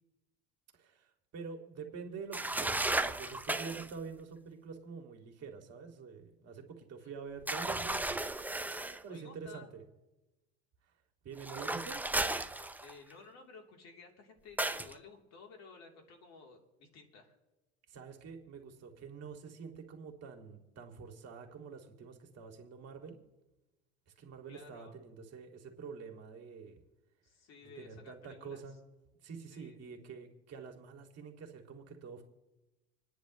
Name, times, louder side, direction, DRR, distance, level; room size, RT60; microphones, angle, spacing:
voice 1, 0.7-8.1 8.9-9.8 11.2-12.0 17.9-23.2 24.1-26.8 27.8-28.8 29.2-32.2, right 5 dB, 50° right, 4 dB, 2.4 m, -47 dB
sound 1, 2.3-3.9 7.5-9.0 11.4-13.1 14.6-14.9, right 2 dB, 5° right, 0.6 m, -34 dB
voice 2, 9.1-9.7 12.8-17.4 24.5-24.9 27.2-28.6 29.5-29.8, left 4 dB, 50° left, 1 dB, 3.3 m, -54 dB
28.0 x 10.0 x 3.1 m, 1.1 s
hypercardioid pair, 85°, 33 cm